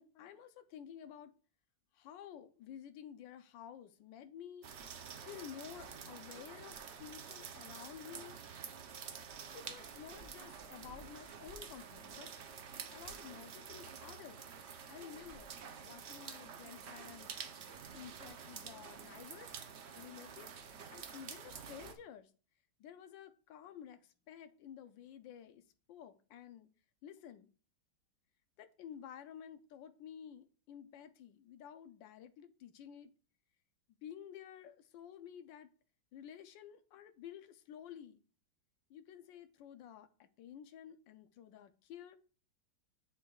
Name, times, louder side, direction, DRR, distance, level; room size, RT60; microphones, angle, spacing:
voice 1, 0.0-1.3 1.9-4.7 5.2-8.4 9.5-12.3 12.9-14.4 14.9-15.5 15.8-17.3 17.9-19.6 20.0-20.5 20.9-22.3 22.8-26.7 27.0-27.5 28.6-33.1 34.0-35.7 36.1-38.2 38.9-42.2, left 9 dB, 80° left, 1.3 m, -52 dB
sound 1, 4.6-22.0, right 6 dB, 80° right, 0.5 m, -49 dB
7.1 x 6.8 x 2.3 m
omnidirectional pair, 2.0 m